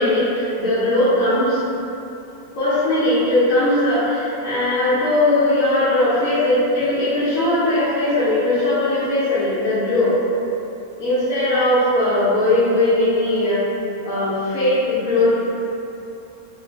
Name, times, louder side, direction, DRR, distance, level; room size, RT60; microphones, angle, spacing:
voice 1, 0.0-1.7 2.6-10.1 11.0-13.6 14.0-15.3, left 1 dB, 85° left, -13 dB, 1.2 m, -19 dB
3.0 x 2.5 x 3.2 m, 2.8 s
omnidirectional pair, 1.5 m